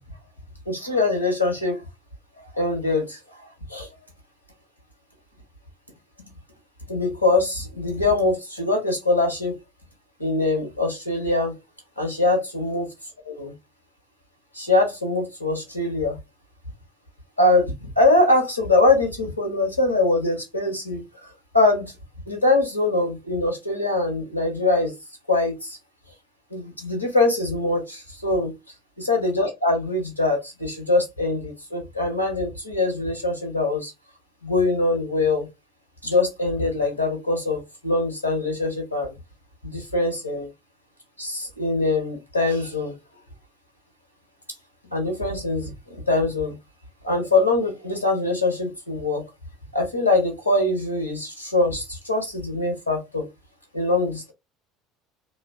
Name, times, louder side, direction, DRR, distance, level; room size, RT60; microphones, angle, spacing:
voice 1, 0.7-1.8 2.5-3.9 6.9-9.6 10.2-11.6 12.0-12.9 13.2-13.5 14.5-16.2 17.4-21.9 22.3-24.9 25.3-25.8 26.5-28.5 29.1-33.9 34.4-35.5 36.0-39.1 39.6-40.5 41.2-42.9 44.9-46.6 47.0-49.2 49.7-53.3 53.7-54.3, left 2 dB, 85° left, 0.7 m, -23 dB
2.6 x 2.2 x 2.2 m
figure-of-eight pair, 65°, 0 cm